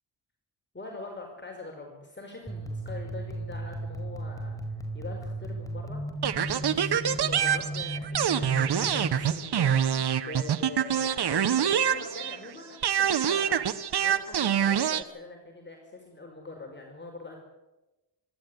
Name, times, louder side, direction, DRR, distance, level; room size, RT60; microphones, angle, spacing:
voice 1, 0.7-4.5 4.9-6.0 6.4-17.4, left 2 dB, 25° left, 2 dB, 4.9 m, -43 dB
sound 1, 2.5-9.3, right 1 dB, 10° left, 4.5 m, -35 dB
sound 2, 6.2-12.5 12.8-15.0, right 8 dB, 65° right, 1.3 m, -25 dB
26.0 x 12.0 x 9.9 m, 1.1 s
cardioid pair, 70°, 43 cm